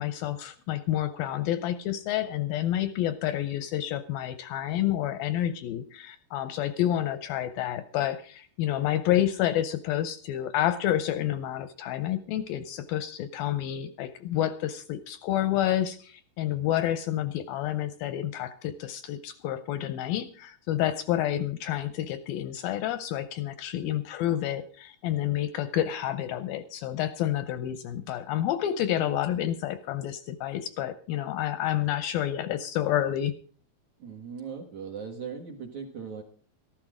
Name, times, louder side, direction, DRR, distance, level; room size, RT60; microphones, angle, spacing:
voice 1, 0.0-33.4, left 12 dB, 80° left, 13 dB, 2.2 m, -29 dB
voice 2, 34.0-36.2, right 6 dB, 55° right, 1 dB, 2.2 m, -39 dB
14.0 x 12.0 x 4.9 m, 0.41 s
omnidirectional pair, 4.8 m